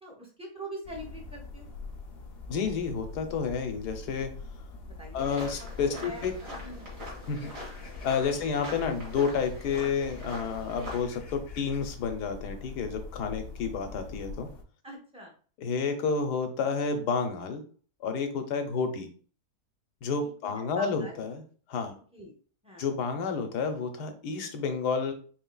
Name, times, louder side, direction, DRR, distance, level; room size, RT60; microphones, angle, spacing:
voice 1, 0.0-1.7 4.9-5.7 5.9-6.9 14.8-15.3 20.2-20.3 20.6-21.1 22.1-22.3 22.6-22.8, right 1 dB, 5° right, -1 dB, 0.6 m, -43 dB
sound 1, 0.8-14.6, left 3 dB, 70° left, 0.5 m, -44 dB
voice 2, 2.5-4.3 5.1-6.3 7.3-7.5 8.0-14.5 15.6-17.6 18.0-19.1 20.0-21.4 21.7-21.9 22.8-25.1, left 5 dB, 90° left, 7 dB, 1.3 m, -30 dB
sound 2, 5.2-11.0, equal, 55° right, 1.9 m, -43 dB
4.5 x 3.2 x 2.2 m, 0.42 s
omnidirectional pair, 1.7 m